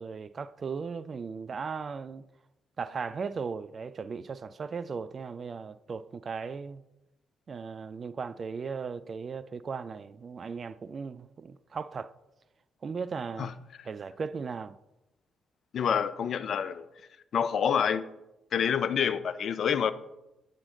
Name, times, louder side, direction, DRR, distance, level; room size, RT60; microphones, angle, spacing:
voice 1, 0.0-2.3 2.8-6.8 7.5-12.1 12.8-13.5 13.8-14.8, right 5 dB, 45° right, 0.3 m, -37 dB
voice 2, 15.7-16.9 17.3-18.1 18.5-19.9, left 7 dB, 60° left, 0.4 m, -27 dB
7.3 x 6.5 x 3.8 m
hypercardioid pair, 45°, 0 cm